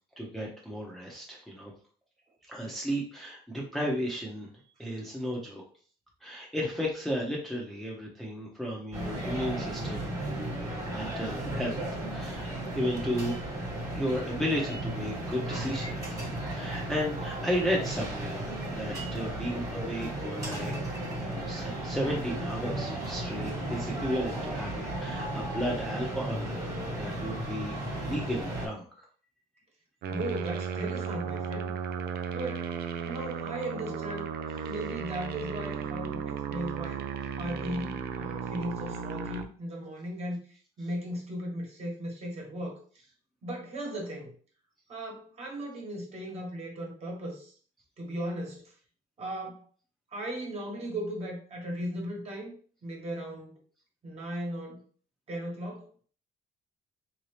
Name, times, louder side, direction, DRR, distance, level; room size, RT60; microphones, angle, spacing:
voice 1, 0.2-1.7 2.5-4.5 4.8-5.6 6.2-11.8 12.1-13.3 13.9-16.2 16.5-20.7 21.1-27.7 28.0-29.1 33.0-33.1, equal, ahead, -3 dB, 0.9 m, -34 dB
sound 1, 8.9-28.7, right 1 dB, 20° right, 1.4 m, -35 dB
sound 2, 30.0-39.4, right 7 dB, 70° right, 0.5 m, -35 dB
voice 2, 30.1-31.7 32.3-32.7 33.0-34.3 34.6-37.1 37.4-42.8 43.4-44.3 44.9-47.5 48.0-48.7 49.2-49.6 50.1-52.5 52.8-53.6 54.0-54.8 55.3-55.9, right 1 dB, 40° right, 0 dB, 1.4 m, -37 dB
3.7 x 2.8 x 3.3 m, 0.44 s
cardioid pair, 110°, 17 cm